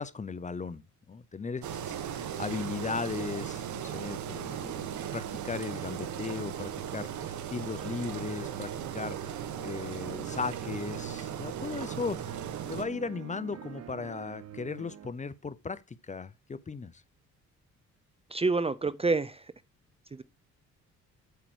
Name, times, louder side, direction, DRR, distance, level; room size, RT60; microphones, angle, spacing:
voice 1, 0.0-12.4 12.7-17.0, left 5 dB, 25° left, 0.7 m, -37 dB
Engine, 1.6-12.8, right 9 dB, 70° right, 1.3 m, -37 dB
sound 1, 1.9-15.1, right 10 dB, 55° right, 1.0 m, -46 dB
voice 2, 18.3-19.4, right 3 dB, 20° right, 0.5 m, -27 dB
8.2 x 4.5 x 6.2 m
cardioid pair, 90°, 30 cm